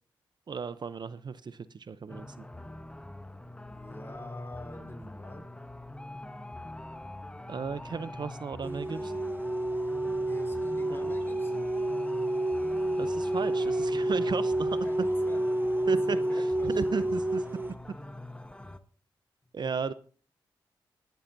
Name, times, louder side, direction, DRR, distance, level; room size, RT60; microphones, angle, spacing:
voice 1, 0.5-2.5 7.5-9.1 10.9-11.1 13.0-14.8 15.9-17.4 19.5-19.9, right 5 dB, 55° right, 14 dB, 0.6 m, -35 dB
sound 1, 2.1-18.8, left 1 dB, 10° left, 1.0 m, -44 dB
voice 2, 3.7-5.4 10.3-11.7 14.8-15.4 15.9-16.7 17.0-17.1 19.6-19.7, left 1 dB, 25° left, 4 dB, 4.9 m, -46 dB
sound 2, 8.6-17.7, right 1 dB, 25° right, 0.9 m, -29 dB
20.0 x 11.5 x 2.7 m, 0.40 s
cardioid pair, 60°, 9 cm